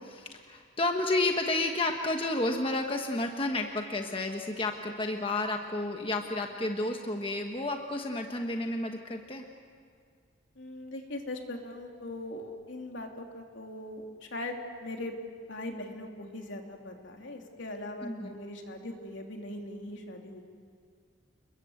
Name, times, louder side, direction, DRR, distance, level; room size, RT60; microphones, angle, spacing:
voice 1, 0.0-9.4 18.0-18.4, left 2 dB, 25° left, 3 dB, 1.2 m, -31 dB
voice 2, 10.6-15.1 15.5-20.4, left 1 dB, 75° left, 2 dB, 2.9 m, -40 dB
29.0 x 21.5 x 7.9 m, 2.1 s
head